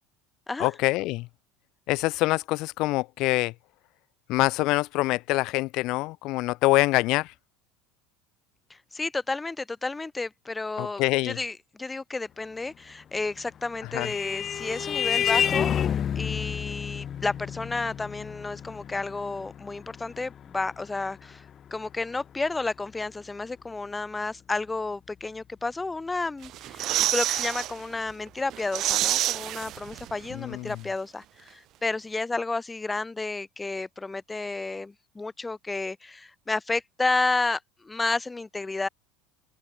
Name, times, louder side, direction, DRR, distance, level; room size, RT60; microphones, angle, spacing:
voice 1, 0.6-1.3 1.9-3.5 4.3-7.3 10.8-11.4 13.9-14.1 30.3-30.7, left 20 dB, 50° left, 2.5 m, -25 dB
voice 2, 8.7-15.9 16.2-21.5 21.7-38.9, left 3 dB, 10° left, 5.6 m, -31 dB
Vehicle horn car horn honking, 13.4-22.4, left 9 dB, 25° left, 3.3 m, -30 dB
sound 1, 26.4-27.7 28.1-28.2 28.5-30.3 30.5-30.6, right 14 dB, 40° right, 4.9 m, -27 dB
open air
cardioid pair, 160°, 0 cm